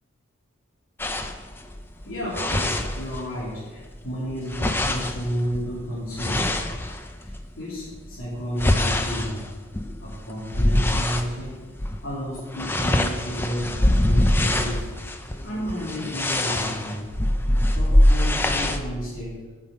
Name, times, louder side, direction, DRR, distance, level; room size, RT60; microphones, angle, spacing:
sound 1, 1.0-3.5 3.8-7.4 8.0-11.3 11.7-12.0 12.3-18.8, left 1 dB, 10° left, 0.4 m, -24 dB
voice 1, 2.0-6.4 7.2-9.4 10.0-11.6 12.0-14.8 15.1-17.0 17.7-19.4, equal, 80° left, -8 dB, 2.7 m, -31 dB
8.8 x 5.5 x 6.4 m, 1.4 s
head